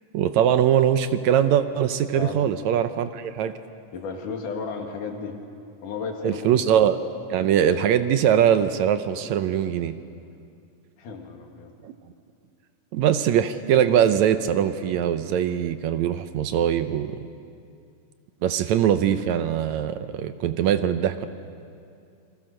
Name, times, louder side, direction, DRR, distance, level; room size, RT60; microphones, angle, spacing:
voice 1, 0.1-3.5 6.2-7.0 7.3-9.9 11.8-11.9 12.9-17.2 18.4-21.3, right 9 dB, 75° right, 10 dB, 2.0 m, -22 dB
voice 2, 3.9-5.4 5.8-6.6 9.2-9.3 11.0-11.7, left 5 dB, 85° left, 2 dB, 3.4 m, -34 dB
29.0 x 21.0 x 6.5 m, 2.5 s
omnidirectional pair, 3.6 m